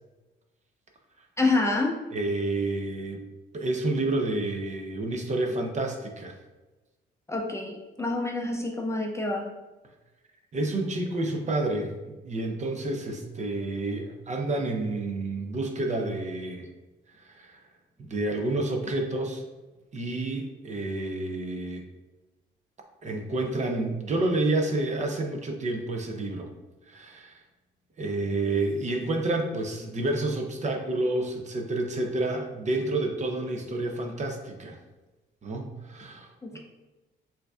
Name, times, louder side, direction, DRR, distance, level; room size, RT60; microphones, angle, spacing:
voice 1, 1.4-2.0 7.3-9.5 36.4-36.6, left 2 dB, 15° left, 0 dB, 0.4 m, -27 dB
voice 2, 2.1-3.2 3.5-6.3 10.5-16.7 17.1-17.6 18.0-19.4 19.9-21.9 23.0-26.5 26.9-27.4 28.0-34.8 35.4-36.3, right 2 dB, 35° right, 3 dB, 0.5 m, -29 dB
4.4 x 2.5 x 2.4 m, 1.1 s
cardioid pair, 90°, 20 cm